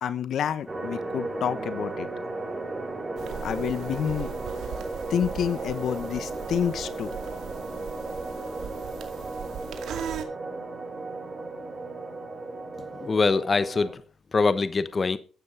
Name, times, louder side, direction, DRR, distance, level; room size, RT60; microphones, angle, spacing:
voice 1, 0.0-2.1 3.4-4.3 5.1-7.2, left 8 dB, 65° left, 1.2 m, -28 dB
sound 1, 0.7-13.9, right 2 dB, 25° right, 5.5 m, -35 dB
sound 2, 3.2-10.2, right 8 dB, 75° right, 2.3 m, -40 dB
voice 2, 12.8-14.0 14.3-15.2, left 4 dB, 35° left, 1.0 m, -24 dB
13.0 x 9.3 x 4.9 m
cardioid pair, 90°, 0 cm